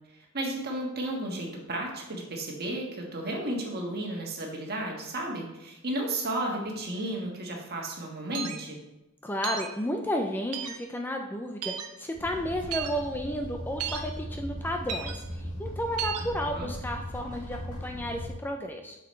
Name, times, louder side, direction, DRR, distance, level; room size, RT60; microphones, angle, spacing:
voice 1, 0.1-8.8 16.2-16.7, right 1 dB, 45° right, 0 dB, 1.4 m, -33 dB
sound 1, 8.3-8.6 9.4-9.7 10.5-10.8 11.6-11.9 12.7-12.9 13.8-14.0 14.9-15.1 16.0-16.2, right 9 dB, 80° right, 0.7 m, -33 dB
voice 2, 9.2-19.0, equal, 10° left, 3 dB, 0.4 m, -32 dB
sound 2, 12.1-18.3, equal, 75° left, 2.1 m, -38 dB
7.7 x 6.1 x 3.1 m, 0.94 s
head